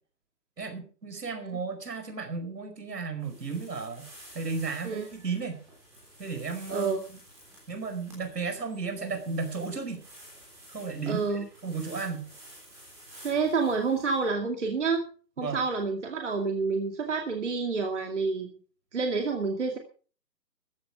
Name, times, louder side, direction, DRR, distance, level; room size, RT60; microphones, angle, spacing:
voice 1, 0.6-5.6 6.2-7.2 7.7-10.0 10.7-12.3 15.4-15.6, right 4 dB, 70° right, 7 dB, 5.2 m, -34 dB
sound 1, 3.2-14.3, right 1 dB, 5° right, 3.4 m, -52 dB
voice 2, 6.7-7.0 11.1-11.5 13.2-15.1 15.4-18.6 18.9-19.8, right 4 dB, 45° right, 3 dB, 2.4 m, -28 dB
14.5 x 12.5 x 4.8 m, 0.39 s
hypercardioid pair, 175°, 50 cm